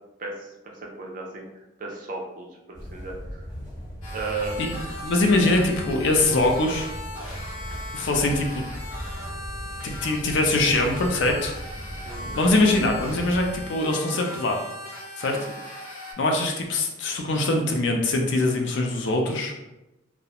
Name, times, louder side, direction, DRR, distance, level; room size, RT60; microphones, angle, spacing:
voice 1, 0.2-1.4 1.8-3.4 4.1-4.6 7.7-7.8 12.0-12.4 15.3-15.5, right 3 dB, 40° right, 1 dB, 0.4 m, -35 dB
sound 1, 2.7-13.7, equal, 20° left, 0.8 m, -38 dB
sound 2, 4.0-16.1, left 1 dB, 85° left, 0.7 m, -39 dB
voice 2, 5.0-6.9 7.9-8.6 9.8-11.5 12.4-14.6 15.2-15.4 16.2-19.5, left 2 dB, 60° left, 3 dB, 0.4 m, -23 dB
2.3 x 2.0 x 2.8 m, 0.97 s
head